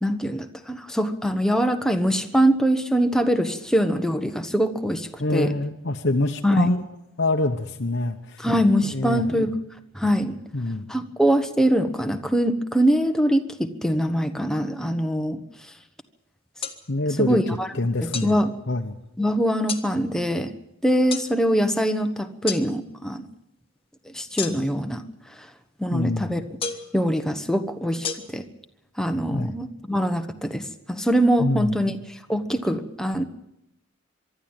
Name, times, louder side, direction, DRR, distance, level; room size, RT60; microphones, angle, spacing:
voice 1, 0.0-5.5 6.4-6.7 8.4-9.5 9.9-10.4 10.9-15.4 17.2-17.7 18.0-18.5 19.2-20.5 20.8-23.3 24.1-25.0 25.4-25.5 25.8-26.4 26.9-28.4 29.0-33.2, equal, 5° left, 7 dB, 1.1 m, -23 dB
voice 2, 5.2-6.8 7.2-8.4 8.9-9.2 10.5-10.9 16.9-17.4 17.8-18.4 18.7-18.9 25.9-26.3 29.3-29.6 31.4-31.9, left 2 dB, 55° left, 3 dB, 1.0 m, -25 dB
sound 1, 16.6-16.8 18.1-18.3 19.7-19.9 21.1-21.3 22.5-22.6 24.4-24.8 26.6-26.9 28.0-28.1, left 6 dB, 25° left, 1.5 m, -30 dB
24.0 x 12.5 x 8.9 m, 0.84 s
head